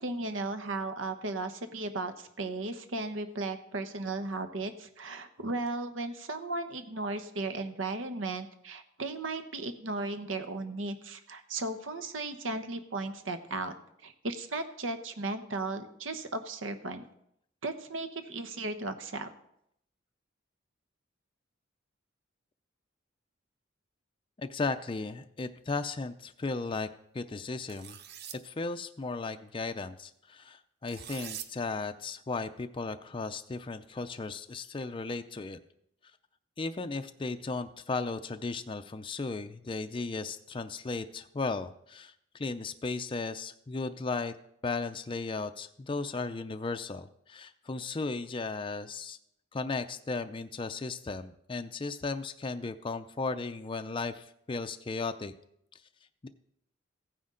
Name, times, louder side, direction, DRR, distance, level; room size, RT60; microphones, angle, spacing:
voice 1, 0.0-13.7 14.0-17.1 17.6-19.3, right 2 dB, 80° right, 8 dB, 1.0 m, -36 dB
voice 2, 24.4-26.9 27.1-28.0 28.3-35.6 36.6-44.3 44.6-49.2 49.5-55.3 56.2-56.3, left 3 dB, 25° left, 8 dB, 0.4 m, -35 dB
sound 1, 27.7-28.4 30.9-31.5, right 9 dB, 55° right, 0.7 m, -43 dB
15.5 x 9.5 x 3.8 m, 0.75 s
head